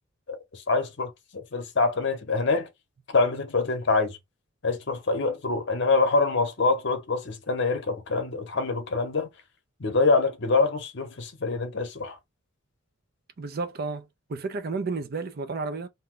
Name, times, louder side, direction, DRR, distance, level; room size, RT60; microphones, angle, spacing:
voice 1, 0.3-2.7 3.1-4.2 4.6-9.3 9.8-12.2, left 3 dB, 55° left, 0.8 m, -25 dB
voice 2, 13.4-15.9, right 3 dB, 45° right, 0.5 m, -32 dB
2.6 x 2.2 x 3.6 m
head